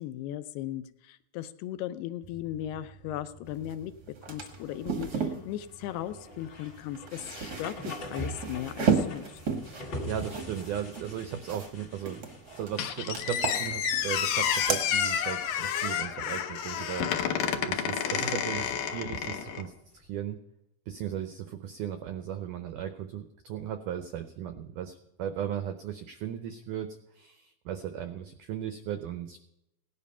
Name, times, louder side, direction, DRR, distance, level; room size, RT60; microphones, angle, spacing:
voice 1, 0.0-3.9 4.3-9.3, left 12 dB, 85° left, 12 dB, 2.8 m, -37 dB
sound 1, 2.2-20.2, left 1 dB, 40° left, 1.9 m, -46 dB
sound 2, 3.7-3.8 4.1-5.4 6.8-11.7 12.0-12.8 13.1-14.1 14.4-14.8, right 6 dB, 70° right, 0.9 m, -32 dB
voice 2, 10.1-12.3 12.6-20.4 20.9-29.4, right 9 dB, 85° right, 8 dB, 1.8 m, -37 dB
Squeak, 12.8-19.7, left 8 dB, 70° left, 2.4 m, -30 dB
17.5 x 10.5 x 5.5 m, 0.85 s
omnidirectional pair, 4.6 m